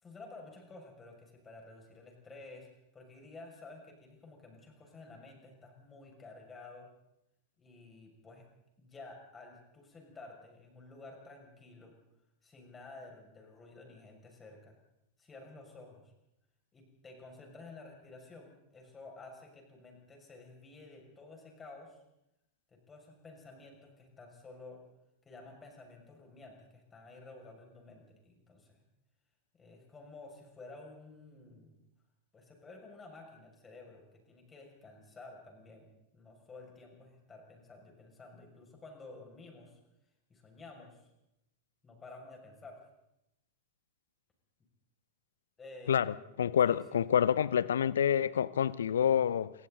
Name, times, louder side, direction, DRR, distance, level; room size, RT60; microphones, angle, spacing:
voice 1, 0.0-2.7 2.9-6.9 7.6-8.5 8.8-11.9 12.4-14.8 15.2-16.1 16.7-22.0 22.7-24.8 25.2-28.8 29.5-31.8 32.3-39.8 40.3-41.1 41.8-42.9 45.6-46.4 46.6-47.0, left 3 dB, 15° left, 2 dB, 6.3 m, -52 dB
voice 2, 45.9-49.5, left 9 dB, 65° left, 20 dB, 0.7 m, -28 dB
28.0 x 23.0 x 4.0 m, 0.86 s
figure-of-eight pair, 90°, 0 cm